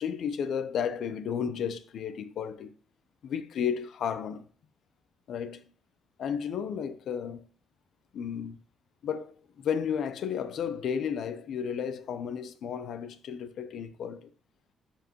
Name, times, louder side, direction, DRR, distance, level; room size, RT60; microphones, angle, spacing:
voice 1, 0.0-2.7 3.2-4.5 5.3-5.6 6.2-7.5 8.1-8.6 9.0-14.3, left 7 dB, 70° left, 0.6 m, -33 dB
7.7 x 4.5 x 2.9 m
cardioid pair, 90°, 0 cm